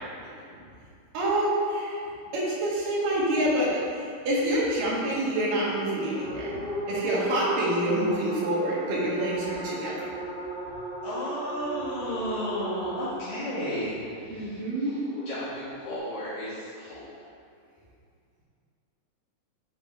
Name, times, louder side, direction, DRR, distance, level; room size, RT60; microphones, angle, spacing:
voice 1, 1.1-2.0 2.3-3.8 4.3-6.5 6.9-9.9 14.3-14.9, right 1 dB, 75° right, -6 dB, 3.0 m, -27 dB
sound 1, 6.1-13.1 14.9-16.0, right 1 dB, 45° right, 0.9 m, -35 dB
voice 2, 6.2-6.9 11.0-15.0 15.3-17.0, equal, 75° left, -12 dB, 3.4 m, -34 dB
9.9 x 3.6 x 4.5 m, 2.3 s
omnidirectional pair, 4.0 m